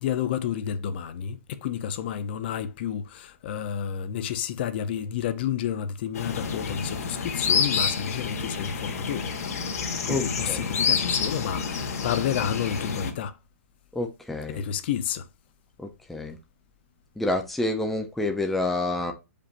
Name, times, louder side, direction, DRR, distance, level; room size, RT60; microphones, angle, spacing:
voice 1, 0.0-9.3 10.0-13.4 14.5-15.3, left 9 dB, 45° left, 0.7 m, -30 dB
sound 1, 6.2-13.1, left 6 dB, 80° left, 1.7 m, -28 dB
voice 2, 10.1-10.6 13.9-14.6 16.1-16.4 17.2-19.1, left 2 dB, ahead, 0.6 m, -28 dB
7.1 x 5.2 x 2.6 m
hypercardioid pair, 165°, 8 cm